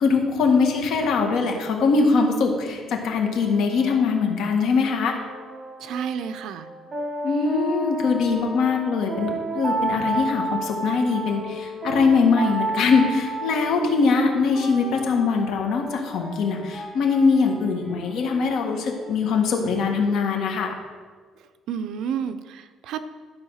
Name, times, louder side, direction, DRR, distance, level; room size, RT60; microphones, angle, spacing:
voice 1, 0.0-5.2 7.2-20.7, left 4 dB, 70° left, 2 dB, 1.6 m, -22 dB
sound 1, 2.5-20.0, right 2 dB, 15° right, 1.7 m, -33 dB
voice 2, 5.8-6.7 21.7-23.0, right 8 dB, 70° right, 10 dB, 0.6 m, -30 dB
12.0 x 4.7 x 6.5 m, 1.5 s
cardioid pair, 145°, 0 cm